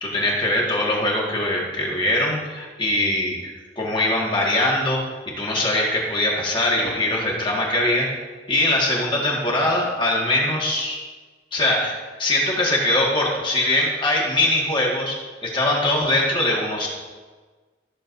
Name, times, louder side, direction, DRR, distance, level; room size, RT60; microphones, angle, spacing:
voice 1, 0.0-8.1 8.5-11.0 11.5-11.9 12.2-15.2 15.4-16.9, left 1 dB, 30° left, -3 dB, 1.9 m, -22 dB
14.0 x 7.2 x 2.7 m, 1.4 s
head